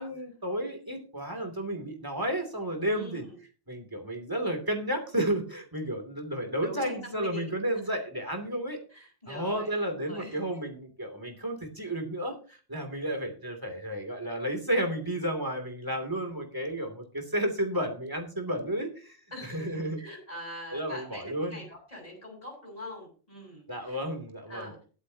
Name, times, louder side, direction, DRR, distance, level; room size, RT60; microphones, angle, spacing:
voice 1, 0.0-3.2 3.7-8.8 9.3-19.2 19.4-20.0 20.7-21.6 23.7-24.7, right 1 dB, 20° right, 4 dB, 2.9 m, -32 dB
voice 2, 2.9-3.4 6.6-7.4 7.7-7.9 8.9-10.4 19.3-24.0 24.5-24.8, left 1 dB, 35° left, -1 dB, 7.2 m, -43 dB
21.5 x 8.1 x 2.9 m, 0.37 s
omnidirectional pair, 1.1 m